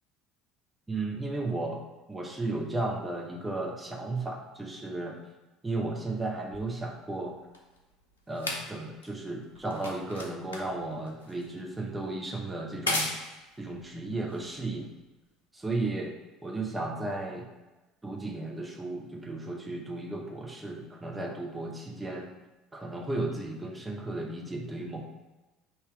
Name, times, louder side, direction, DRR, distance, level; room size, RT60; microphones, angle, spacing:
voice 1, 0.9-1.8 2.1-5.2 5.6-7.4 8.3-13.1 13.6-14.9 15.5-16.1 16.4-17.5 18.0-22.3 22.7-25.0, right 2 dB, 15° right, -1 dB, 0.8 m, -34 dB
sound 1, 6.5-15.1 16.0-16.1, left 2 dB, 80° left, 0.6 m, -38 dB
4.0 x 2.7 x 4.5 m, 1.1 s
figure-of-eight pair, 65°, 0 cm